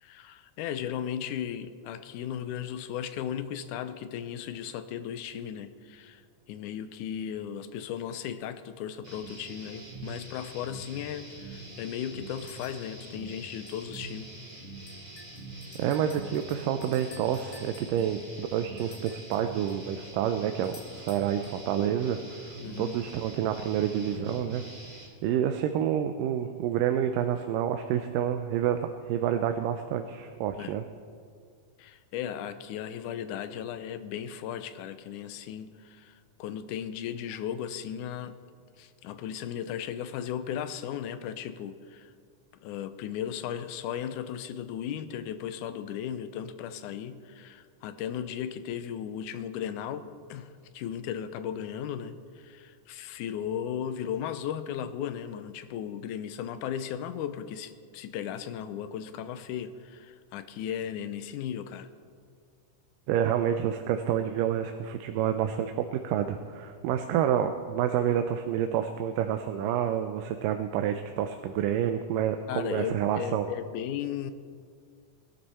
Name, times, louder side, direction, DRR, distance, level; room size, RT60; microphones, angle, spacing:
voice 1, 0.0-6.2 6.5-14.3 22.6-23.0 30.6-30.8 31.8-38.4 38.8-42.1 42.6-61.9 72.5-74.3, left 9 dB, 80° left, 11 dB, 2.0 m, -36 dB
sound 1, 9.0-25.1, right 2 dB, 20° right, 1.4 m, -44 dB
sound 2, 12.4-12.9 13.7-14.2 14.5-14.6 14.9-19.8 20.6-21.7, left 3 dB, 50° left, 3.1 m, -52 dB
voice 2, 15.8-24.7 25.0-30.8 63.1-73.5, right 9 dB, 85° right, 7 dB, 2.3 m, -28 dB
20.5 x 12.5 x 4.2 m, 2.1 s
omnidirectional pair, 3.8 m